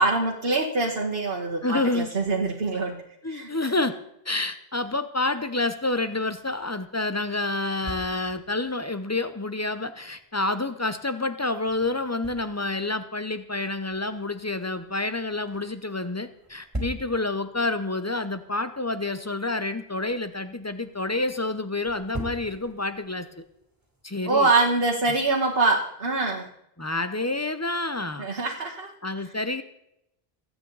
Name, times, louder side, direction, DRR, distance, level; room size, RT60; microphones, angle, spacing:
voice 1, 0.0-3.0 3.3-3.7 24.3-26.5 28.2-28.9, right 3 dB, 65° right, -2 dB, 1.8 m, -24 dB
voice 2, 1.6-2.1 3.2-4.0 4.3-23.4 24.0-24.5 26.8-28.3 29.0-29.6, left 2 dB, 20° left, 11 dB, 0.7 m, -28 dB
sound 1, 5.2-24.0, right 1 dB, 15° right, 3.7 m, -45 dB
25.0 x 9.0 x 4.0 m, 0.80 s
omnidirectional pair, 1.1 m